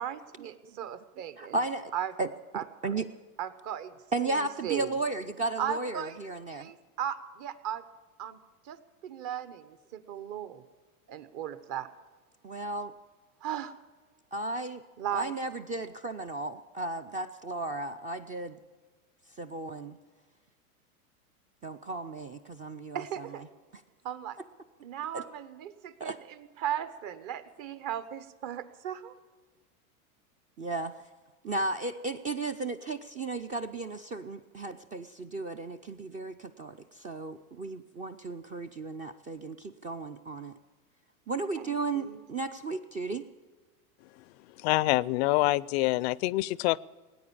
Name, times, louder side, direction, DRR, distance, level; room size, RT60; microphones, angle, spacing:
voice 1, 0.0-1.6 1.9-2.1 2.5-2.6 3.4-3.9 4.3-5.0 5.6-6.2 6.5-7.8 8.2-8.4 8.6-10.6 11.1-11.9 13.4-13.8 15.0-15.3 22.9-23.4 24.0-24.4 24.8-29.1 41.5-42.2, right 10 dB, 40° right, 13 dB, 1.2 m, -37 dB
voice 2, 1.4-1.9 2.2-2.3 2.5-3.1 4.1-6.7 12.4-12.9 14.3-14.8 15.1-18.6 19.4-20.0 21.6-23.3 25.1-25.2 26.0-26.2 30.6-31.0 31.4-40.5 41.3-43.3, right 3 dB, 20° right, 9 dB, 0.4 m, -34 dB
voice 3, 44.6-46.8, left 19 dB, 50° left, 22 dB, 0.4 m, -26 dB
19.0 x 9.3 x 7.1 m, 1.4 s
hypercardioid pair, 115°, 44 cm